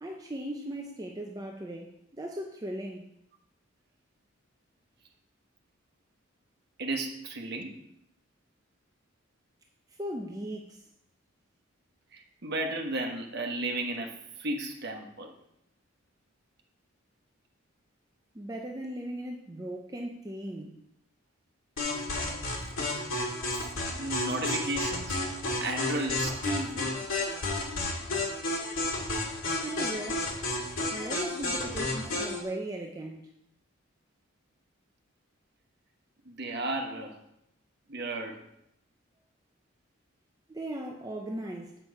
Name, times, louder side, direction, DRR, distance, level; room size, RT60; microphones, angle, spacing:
voice 1, 0.0-3.1 10.0-10.8 18.3-20.8 29.6-30.3 30.9-33.2 40.5-41.8, right 1 dB, 15° right, 1 dB, 0.5 m, -38 dB
voice 2, 6.8-7.7 12.1-15.3 22.7-22.9 23.5-23.7 24.0-25.2 25.6-26.9 36.2-37.2 37.9-38.4, right 2 dB, 50° right, 3 dB, 1.1 m, -34 dB
sound 1, 21.8-32.4, left 2 dB, 80° left, 2.0 m, -32 dB
7.9 x 6.1 x 4.7 m, 0.78 s
head